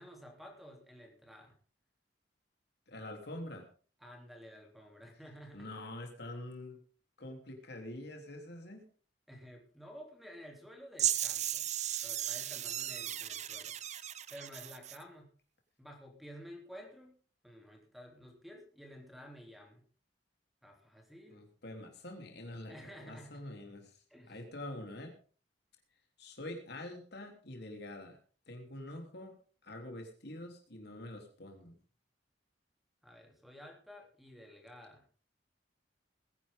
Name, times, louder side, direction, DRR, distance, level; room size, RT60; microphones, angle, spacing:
voice 1, 0.0-1.5 4.0-5.7 9.3-11.7 12.0-13.7 14.3-15.3 15.8-17.2 17.4-19.8 20.6-21.4 22.7-23.4 24.1-24.4 33.0-35.1, equal, ahead, 2 dB, 3.3 m, -52 dB
voice 2, 2.9-3.6 5.5-6.8 7.2-8.8 21.3-24.0 24.3-25.1 26.2-28.2 28.5-29.4 29.6-31.8, left 1 dB, 65° left, 3 dB, 3.5 m, -45 dB
sound 1, 11.0-15.0, right 11 dB, 40° right, 0.6 m, -36 dB
20.0 x 10.5 x 3.8 m, 0.40 s
head